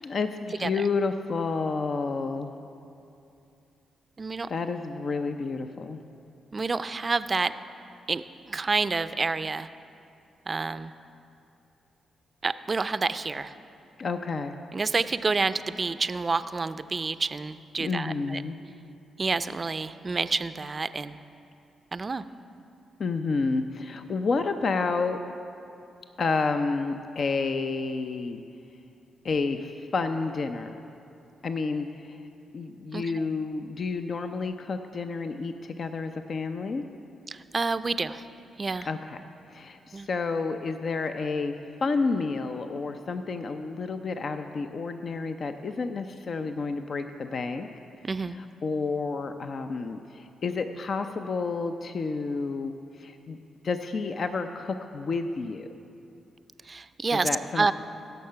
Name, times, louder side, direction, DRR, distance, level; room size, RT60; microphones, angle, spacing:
voice 1, 0.0-2.5 4.5-6.0 14.0-14.6 17.8-18.6 23.0-25.2 26.2-28.4 29.2-30.8 31.4-32.2 32.5-36.8 38.9-39.2 39.5-41.5 41.8-47.7 48.3-53.4 53.6-55.7 57.1-57.7, left 4 dB, 55° left, 7 dB, 0.5 m, -30 dB
voice 2, 4.2-4.5 6.5-7.5 8.1-9.7 10.5-10.9 12.4-13.5 14.7-18.4 19.2-21.2 21.9-22.2 32.9-33.2 37.3-38.2 38.6-38.9 39.9-40.1 48.0-48.4 56.6-57.3 57.6-57.7, right 4 dB, 40° right, 13 dB, 0.4 m, -28 dB
16.0 x 6.6 x 5.7 m, 2.7 s
supercardioid pair, 60°, 0 cm